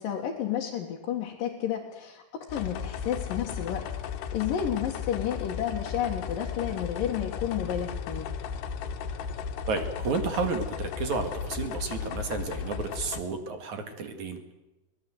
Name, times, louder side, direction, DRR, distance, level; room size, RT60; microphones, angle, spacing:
voice 1, 0.0-2.2 2.5-3.8 4.3-8.3, left 9 dB, 60° left, -1 dB, 3.2 m, -31 dB
sound 1, 2.5-13.2, left 7 dB, 80° left, 3.4 m, -35 dB
voice 2, 9.7-14.4, right 4 dB, 50° right, 7 dB, 2.9 m, -32 dB
24.0 x 18.0 x 8.0 m, 1.0 s
omnidirectional pair, 4.8 m